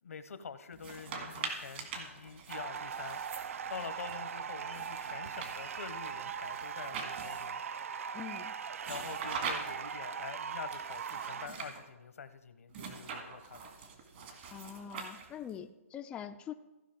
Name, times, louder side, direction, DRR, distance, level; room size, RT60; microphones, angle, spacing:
voice 1, 0.0-3.2 3.7-7.6 8.9-13.6, left 6 dB, 75° left, 12 dB, 0.8 m, -46 dB
sound 1, 0.7-4.2 4.7-7.6 8.8-10.0 10.7-11.8 12.7-15.5, right 5 dB, 50° right, 1.9 m, -43 dB
sound 2, 2.5-11.5, right 7 dB, 70° right, 0.4 m, -40 dB
voice 2, 8.1-8.5 14.5-16.5, left 9 dB, 15° left, 7 dB, 0.3 m, -44 dB
15.5 x 5.2 x 5.1 m, 1.0 s
hypercardioid pair, 140°, 8 cm